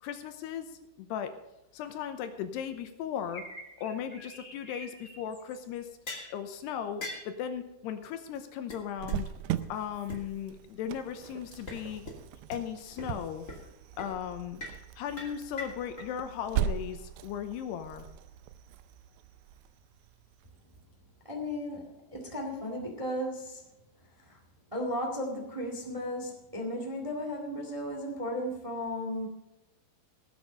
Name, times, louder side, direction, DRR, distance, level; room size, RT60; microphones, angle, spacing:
voice 1, 0.0-1.3 1.7-3.4 3.8-5.9 6.3-9.3 9.7-12.0 12.5-13.5 14.0-14.6 15.0-18.1, left 9 dB, 80° left, 8 dB, 2.8 m, -37 dB
sound 1, 3.3-5.8, equal, 15° left, 1.6 m, -47 dB
sound 2, 6.1-6.3 7.0-7.3 8.0-8.1 8.3-8.4 8.7-8.8 9.1-9.2 9.6-9.7 10.1-10.2 11.5-11.8 12.1-12.2 12.5-12.6 13.0-13.1 13.5-13.7 14.0-14.1 14.6-14.8 15.2-16.1, left 2 dB, 30° left, 1.6 m, -40 dB
Cricket, 9.0-20.4, right 10 dB, 80° right, 2.7 m, -39 dB
voice 2, 21.3-23.6 24.3-24.4 24.7-29.3, left 1 dB, 65° right, 1 dB, 0.3 m, -35 dB
17.5 x 8.2 x 5.3 m, 0.93 s
omnidirectional pair, 5.1 m